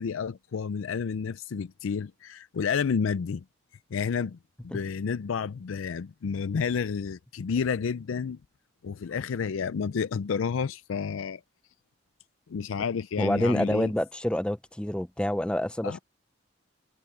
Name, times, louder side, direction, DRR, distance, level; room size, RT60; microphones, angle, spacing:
voice 1, 0.0-3.4 3.9-4.4 4.6-8.4 8.8-11.4 12.5-13.9 15.8-16.0, left 6 dB, 85° left, 0.4 m, -30 dB
voice 2, 13.2-16.0, left 1 dB, 5° left, 0.4 m, -27 dB
head